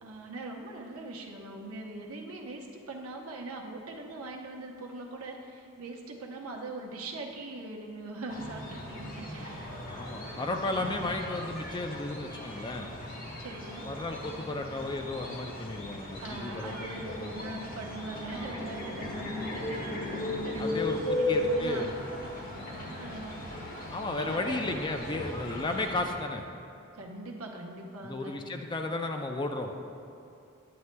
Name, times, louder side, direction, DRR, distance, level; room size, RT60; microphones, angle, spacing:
voice 1, 0.0-9.8 13.4-13.9 16.2-21.9 22.6-23.5 24.2-24.6 26.9-28.3, right 2 dB, 80° right, 0 dB, 0.8 m, -41 dB
sound 1, 8.3-26.2, left 1 dB, 40° left, 1.1 m, -36 dB
voice 2, 9.9-12.9 13.8-16.9 17.2-17.6 20.6-21.9 23.9-26.5 28.0-29.7, left 2 dB, 20° left, 4 dB, 0.4 m, -34 dB
9.4 x 9.4 x 2.2 m, 2.5 s
head